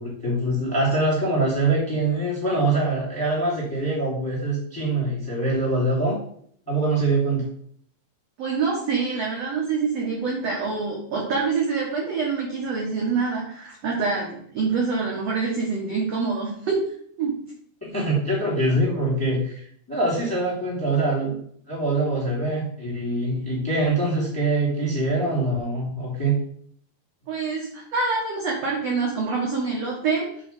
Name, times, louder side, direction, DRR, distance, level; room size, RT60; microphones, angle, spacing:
voice 1, 0.0-6.2 6.7-7.4 17.8-21.4 21.7-26.3, right 2 dB, 10° left, -5 dB, 1.4 m, -24 dB
voice 2, 8.4-16.8 17.2-17.3 27.3-30.3, right 4 dB, 70° right, -2 dB, 1.6 m, -26 dB
8.2 x 3.1 x 5.2 m, 0.62 s
omnidirectional pair, 4.5 m